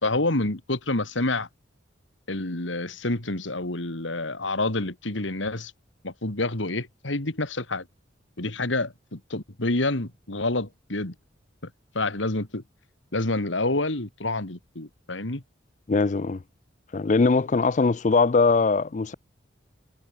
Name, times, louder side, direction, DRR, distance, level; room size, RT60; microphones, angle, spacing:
voice 1, 0.0-1.5 2.3-5.7 6.0-7.9 8.4-11.1 11.6-12.6 13.1-15.4, left 2 dB, 80° left, 2.7 m, -28 dB
voice 2, 15.9-16.4 16.9-19.1, left 4 dB, 40° left, 0.4 m, -21 dB
head